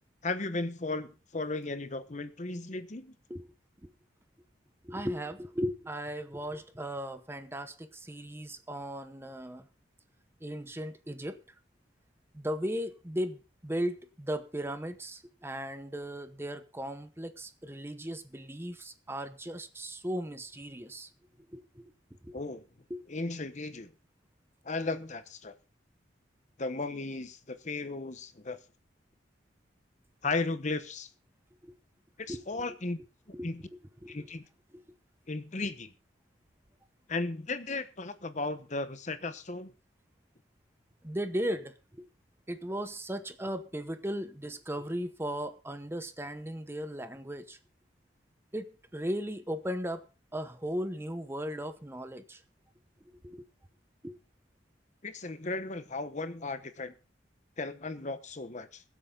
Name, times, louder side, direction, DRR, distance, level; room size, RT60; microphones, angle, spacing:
voice 1, 0.2-3.1 22.3-22.6 23.1-23.9 24.6-25.5 26.6-28.6 30.2-31.1 32.2-33.0 33.4-33.6 34.1-34.4 35.3-35.9 37.1-39.7 55.0-56.9 57.6-58.8, left 3 dB, 40° left, 1.0 m, -35 dB
voice 2, 4.8-9.7 10.4-11.4 12.3-21.1 21.5-21.9 22.2-22.4 22.9-23.0 31.6-31.7 32.3-32.4 33.3-33.5 34.0-34.1 41.0-42.1 42.5-47.6 48.5-50.0 50.3-52.4 53.2-53.4 54.0-54.2, equal, 15° right, 0.9 m, -37 dB
21.5 x 8.4 x 3.8 m
head